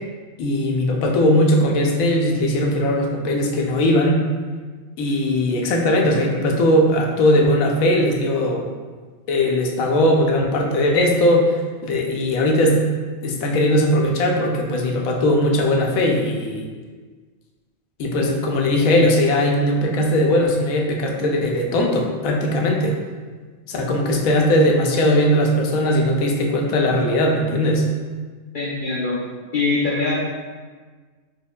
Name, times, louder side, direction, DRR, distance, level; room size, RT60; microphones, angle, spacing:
voice 1, 0.4-4.2 5.0-8.7 9.3-12.8 13.2-16.6 18.0-23.0 23.7-27.8, left 1 dB, 85° left, 0 dB, 1.0 m, -19 dB
voice 2, 28.5-29.2 29.5-30.1, left 3 dB, 60° left, -7 dB, 0.5 m, -22 dB
4.3 x 3.0 x 2.2 m, 1.5 s
omnidirectional pair, 1.4 m